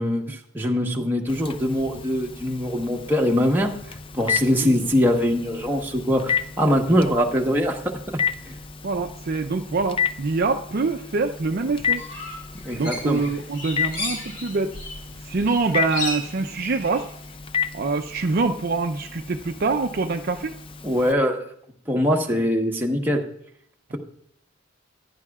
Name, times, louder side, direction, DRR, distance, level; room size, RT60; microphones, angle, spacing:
voice 1, 0.0-3.7 4.1-7.8 8.4-8.5 12.6-13.2 20.8-21.4 21.9-23.2, equal, 10° right, 0 dB, 1.1 m, -22 dB
Telephone, 1.3-21.1, left 7 dB, 25° left, 0.4 m, -32 dB
voice 2, 4.6-4.9 6.9-7.2 8.8-12.0 12.7-14.8 15.2-17.1 17.7-20.5 23.9-24.0, right 3 dB, 50° right, 6 dB, 0.5 m, -25 dB
sound 1, 12.0-15.1 15.3-17.3, left 2 dB, 60° left, 3.0 m, -34 dB
15.5 x 10.5 x 2.4 m, 0.66 s
head